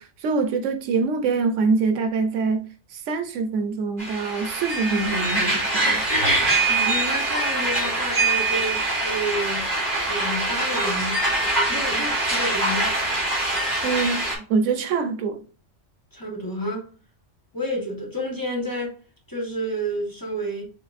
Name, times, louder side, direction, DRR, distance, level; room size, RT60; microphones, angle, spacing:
voice 1, 0.0-6.0 13.8-15.4, right 4 dB, 85° right, 1.0 m, -25 dB
sound 1, 4.0-14.4, right 2 dB, 45° right, 2.8 m, -23 dB
voice 2, 6.7-9.6 10.0-11.2 11.7-12.9 16.1-16.9 17.5-19.0 19.3-20.6, equal, 15° left, 1.3 m, -30 dB
6.6 x 3.1 x 2.5 m
omnidirectional pair, 1.2 m